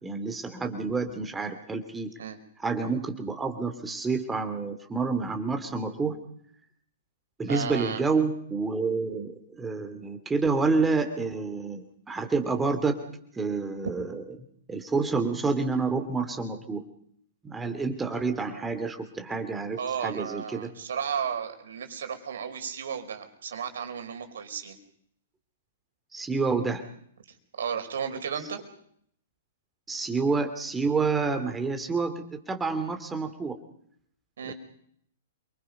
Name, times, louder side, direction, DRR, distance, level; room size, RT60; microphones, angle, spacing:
voice 1, 0.0-2.1 2.6-6.2 7.4-13.0 13.3-14.2 14.7-16.8 17.4-20.7 26.1-26.8 29.9-33.6 34.4-34.5, right 4 dB, 10° right, 6 dB, 3.0 m, -28 dB
voice 2, 7.5-8.0 19.8-24.8 27.5-28.6 34.4-34.5, right 7 dB, 60° right, 6 dB, 4.8 m, -33 dB
28.5 x 25.5 x 5.4 m, 0.66 s
figure-of-eight pair, 110°, 0 cm